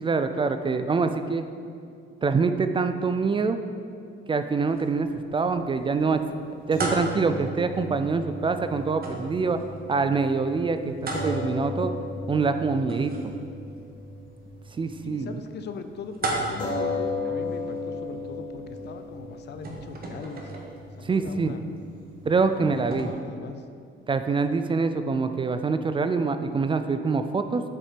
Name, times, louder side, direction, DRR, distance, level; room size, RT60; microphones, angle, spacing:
voice 1, 0.0-1.5 2.2-3.6 4.3-9.6 9.9-11.9 12.3-13.3 14.8-15.4 21.0-21.6 22.2-23.1 24.1-27.6, right 4 dB, 25° right, 9 dB, 0.4 m, -25 dB
sound 1, 4.7-23.0, right 2 dB, 50° right, 1.2 m, -39 dB
sound 2, 6.7-15.2 15.5-15.7 16.6-23.1, left 2 dB, 45° left, 1.7 m, -36 dB
voice 2, 15.0-20.5 21.0-21.6 22.0-22.1 22.5-23.7, left 6 dB, 60° left, 9 dB, 0.5 m, -40 dB
7.5 x 4.3 x 5.1 m, 2.4 s
cardioid pair, 90°, 20 cm